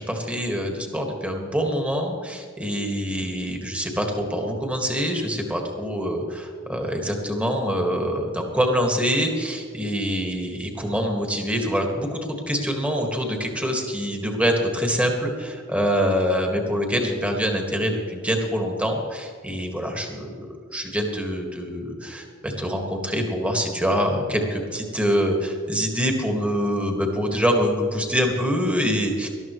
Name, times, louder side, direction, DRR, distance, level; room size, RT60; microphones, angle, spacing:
voice 1, 0.0-12.2 12.5-29.3, equal, 5° right, 2 dB, 1.8 m, -25 dB
19.5 x 13.0 x 3.2 m, 2.1 s
head